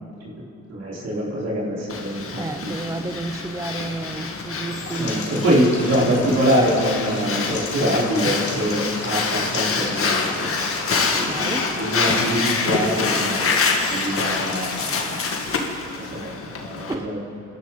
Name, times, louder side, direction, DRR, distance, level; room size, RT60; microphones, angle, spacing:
voice 1, 0.7-2.8 4.9-10.5 10.9-11.4 11.8-13.4 13.9-15.1 15.9-16.3 16.6-17.2, equal, 55° right, -5 dB, 4.3 m, -24 dB
Breathing, 1.9-16.9, left 4 dB, 45° left, 1.8 m, -26 dB
voice 2, 2.4-5.4 11.3-11.7 16.9-17.1, right 2 dB, 10° right, 8 dB, 0.4 m, -31 dB
Stream, 4.9-14.9, left 4 dB, 65° left, 2.5 m, -36 dB
27.5 x 12.5 x 4.0 m, 2.8 s
cardioid pair, 90°, 30 cm